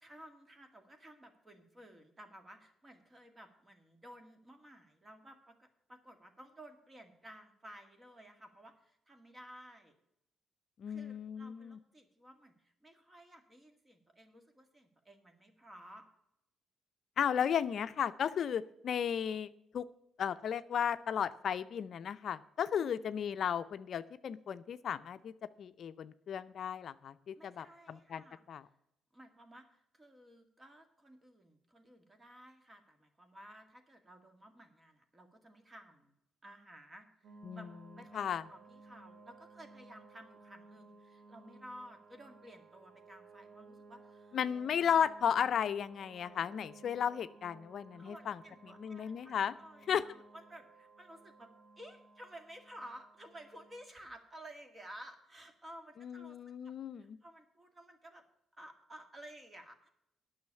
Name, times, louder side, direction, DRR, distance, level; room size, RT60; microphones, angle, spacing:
voice 1, 0.0-10.0 10.9-16.1 22.8-23.0 27.3-28.4 29.1-36.1 36.4-37.7 38.0-44.4 47.9-49.3 49.6-56.4 56.6-58.2 58.5-59.9, right 1 dB, 25° right, 6 dB, 2.0 m, -54 dB
voice 2, 10.8-11.8 17.2-19.8 20.2-25.3 25.6-28.2 28.5-28.6 37.4-37.6 38.1-38.4 44.3-48.4 48.8-49.5 49.9-50.0 56.0-57.2, left 8 dB, 60° left, 12 dB, 0.5 m, -34 dB
sound 1, 37.2-53.9, right 3 dB, 85° right, 2.0 m, -58 dB
9.5 x 6.3 x 8.4 m, 0.78 s
cardioid pair, 90°, 0 cm